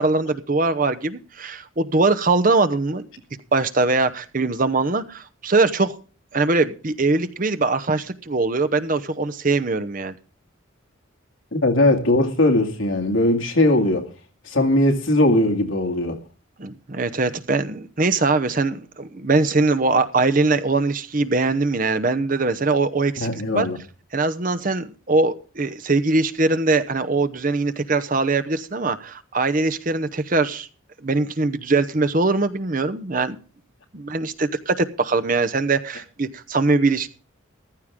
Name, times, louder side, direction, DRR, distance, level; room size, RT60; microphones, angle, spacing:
voice 1, 0.0-3.1 3.5-6.0 6.3-10.2 16.6-23.7 24.1-30.7 31.0-33.4 33.9-37.1, right 3 dB, 40° right, 0.8 m, -22 dB
voice 2, 11.5-14.1 14.5-16.2 23.2-23.8, left 1 dB, 75° left, 2.2 m, -19 dB
14.5 x 13.0 x 3.7 m
head